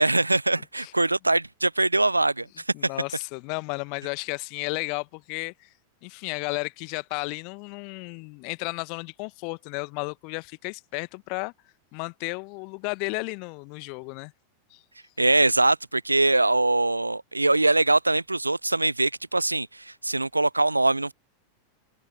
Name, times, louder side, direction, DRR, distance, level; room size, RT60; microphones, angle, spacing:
voice 1, 0.0-2.5 15.2-21.1, right 2 dB, 85° right, 0.4 m, -22 dB
voice 2, 2.7-5.7 6.0-11.5 11.9-14.3 14.7-14.8, left 37 dB, 45° left, 1.3 m, -33 dB
open air
figure-of-eight pair, 90°, 0 cm